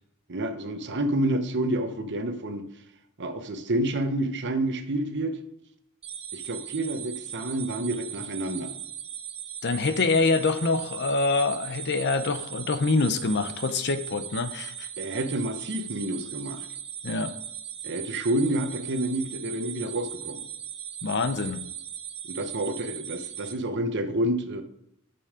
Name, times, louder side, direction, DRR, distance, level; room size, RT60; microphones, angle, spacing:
voice 1, 0.3-2.6 3.2-5.4 6.3-8.7 15.0-16.7 17.8-20.4 22.2-24.6, right 1 dB, 55° right, 8 dB, 1.0 m, -29 dB
sound 1, 6.0-23.5, right 9 dB, 30° right, 1.1 m, -39 dB
voice 2, 9.6-14.9 17.0-17.3 21.0-21.6, left 3 dB, 55° left, 11 dB, 0.7 m, -25 dB
9.0 x 7.0 x 5.0 m, 0.77 s
head